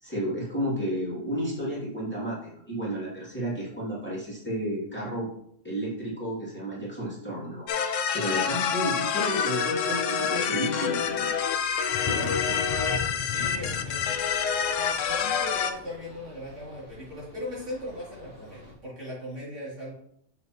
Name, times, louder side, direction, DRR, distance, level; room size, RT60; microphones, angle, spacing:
voice 1, 0.0-5.3 5.6-11.3 12.0-12.6, equal, 10° left, -8 dB, 2.8 m, -32 dB
sound 1, 7.7-15.7, left 7 dB, 85° left, 1.0 m, -27 dB
sound 2, 11.9-17.3 17.8-17.9 18.4-18.5, left 6 dB, 70° left, 0.3 m, -38 dB
sound 3, 12.3-18.7, equal, 45° right, 2.8 m, -51 dB
voice 2, 13.3-14.2 14.8-19.9, left 1 dB, 70° right, -7 dB, 3.3 m, -39 dB
6.7 x 6.6 x 3.0 m, 0.70 s
omnidirectional pair, 1.3 m